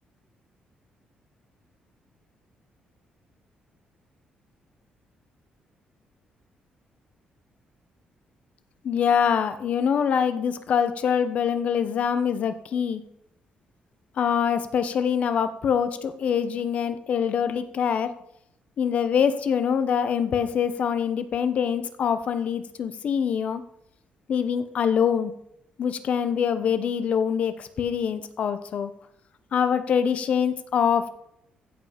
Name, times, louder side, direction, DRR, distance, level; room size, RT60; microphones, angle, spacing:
voice 1, 8.8-13.0 14.2-18.1 18.8-23.6 24.3-25.3 25.8-28.9 29.5-31.1, left 7 dB, 50° left, 11 dB, 0.9 m, -24 dB
15.5 x 5.5 x 5.1 m, 0.76 s
cardioid pair, 170°, 3 cm